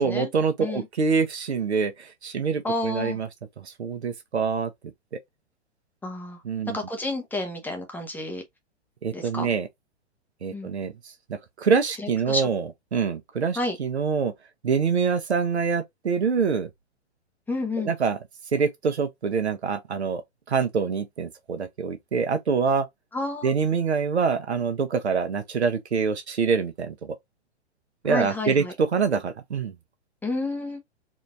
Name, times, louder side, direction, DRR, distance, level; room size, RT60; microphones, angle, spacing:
voice 1, 0.0-3.3 3.6-4.7 6.4-6.8 9.0-9.7 10.4-10.9 11.6-12.6 12.9-14.3 14.6-16.7 17.8-18.2 18.5-20.2 20.5-22.9 23.4-27.2 28.0-29.7, right 5 dB, 70° right, 1.1 m, -25 dB
voice 2, 2.6-3.2 6.0-6.4 6.7-8.4 9.1-9.5 10.5-10.7 12.0-12.5 13.6-13.8 17.5-17.9 23.1-23.5 28.0-28.7 30.2-30.8, left 2 dB, 5° left, 0.7 m, -30 dB
4.2 x 2.6 x 2.4 m
figure-of-eight pair, 115°, 34 cm